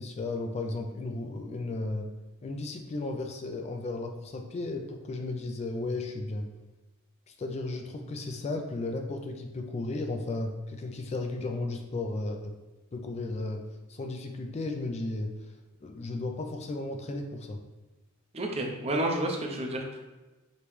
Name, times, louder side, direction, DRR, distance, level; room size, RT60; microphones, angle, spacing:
voice 1, 0.0-2.1 2.4-6.5 7.3-12.6 12.9-15.3 15.8-17.6, left 2 dB, 30° left, 4 dB, 0.3 m, -34 dB
voice 2, 18.3-20.0, right 1 dB, 30° right, 2 dB, 0.6 m, -30 dB
5.1 x 2.9 x 3.2 m, 1.1 s
head